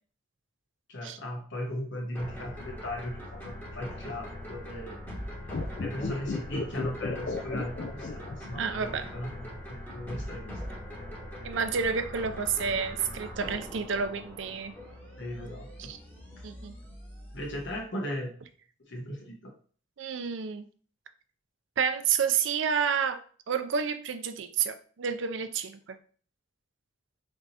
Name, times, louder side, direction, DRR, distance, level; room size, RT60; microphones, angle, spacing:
voice 1, 0.9-5.0 5.8-10.6 15.2-15.9 16.4-16.5 17.3-18.3 18.9-19.5, left 1 dB, 65° left, 1 dB, 1.0 m, -37 dB
sound 1, 2.1-17.8, equal, 10° left, 1.1 m, -42 dB
sound 2, 5.4-8.8 9.1-9.2, left 3 dB, 45° left, 0.4 m, -34 dB
voice 2, 8.6-9.1 11.4-14.7 15.8-16.0 16.4-16.8 20.0-20.7 21.8-23.2 23.5-26.0, right 6 dB, 70° right, 10 dB, 0.4 m, -30 dB
3.5 x 2.8 x 4.0 m, 0.43 s
head